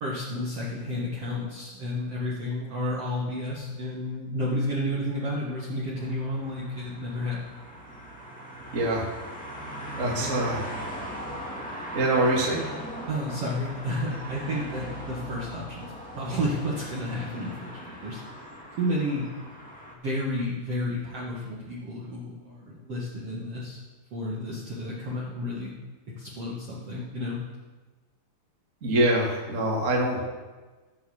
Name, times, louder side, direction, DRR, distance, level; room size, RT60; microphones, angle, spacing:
voice 1, 0.0-7.6 10.0-10.3 13.1-18.2 18.8-19.3 19.9-23.8 24.1-25.7 26.2-27.4, left 1 dB, 50° right, -5 dB, 2.1 m, -31 dB
sound 1, 5.9-19.9, equal, 5° left, 0.6 m, -39 dB
voice 2, 8.7-9.1 10.0-10.6 11.9-12.6 28.8-30.2, right 1 dB, 25° right, -3 dB, 1.9 m, -24 dB
16.0 x 5.9 x 7.1 m, 1.3 s
omnidirectional pair, 4.5 m